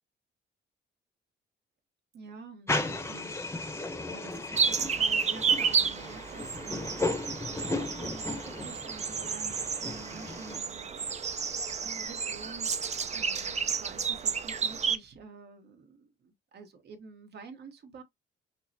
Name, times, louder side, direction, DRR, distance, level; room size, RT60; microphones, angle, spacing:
voice 1, 2.1-3.6 4.1-7.1 7.5-18.0, right 3 dB, 55° right, 1.2 m, -49 dB
sound 1, 2.7-10.6, left 2 dB, 15° left, 0.8 m, -35 dB
sound 2, 4.5-15.0, right 6 dB, 35° right, 0.5 m, -31 dB
5.8 x 2.1 x 2.6 m
cardioid pair, 90°, 20 cm